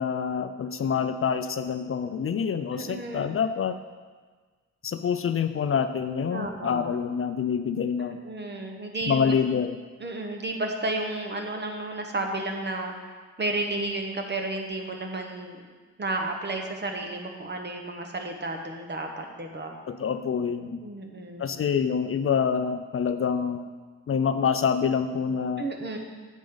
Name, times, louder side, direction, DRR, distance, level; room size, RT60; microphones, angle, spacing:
voice 1, 0.0-3.8 4.8-8.2 9.1-9.8 19.9-20.8 21.4-23.7 24.1-25.6, left 7 dB, 50° left, 9 dB, 0.5 m, -26 dB
voice 2, 2.7-3.3 6.3-6.9 8.0-9.4 10.0-13.1 13.4-15.6 16.0-19.8 20.8-21.6 25.6-26.0, right 2 dB, 35° right, 3 dB, 1.3 m, -32 dB
10.0 x 7.3 x 3.9 m, 1.4 s
cardioid pair, 100°, 29 cm